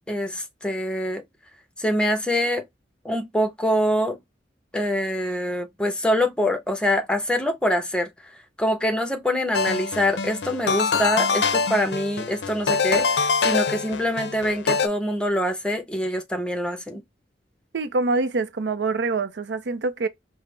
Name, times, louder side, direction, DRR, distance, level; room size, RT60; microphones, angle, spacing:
voice 1, 0.1-1.2 1.8-2.6 3.0-4.2 4.7-8.1 8.6-13.1 13.4-17.0, equal, 5° left, 0.8 m, -24 dB
sound 1, 9.5-14.9, left 5 dB, 70° left, 0.5 m, -24 dB
voice 2, 17.7-20.1, right 3 dB, 75° right, 0.5 m, -25 dB
5.1 x 2.1 x 3.2 m
head